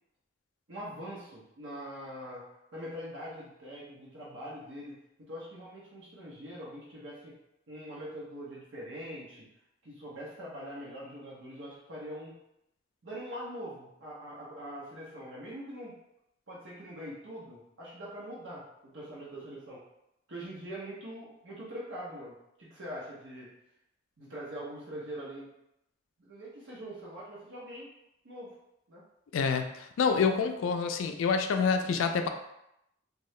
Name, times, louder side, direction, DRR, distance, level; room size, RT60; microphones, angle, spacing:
voice 1, 0.7-2.4 2.7-7.4 7.7-9.5 9.8-12.3 13.0-15.9 16.5-18.7 18.9-19.8 20.3-23.5 24.2-25.5 26.2-27.9 28.2-28.5 28.9-29.0, equal, 70° right, -6 dB, 0.8 m, -43 dB
voice 2, 29.3-32.3, left 5 dB, 85° left, 6 dB, 0.3 m, -27 dB
2.7 x 2.3 x 3.1 m, 0.82 s
head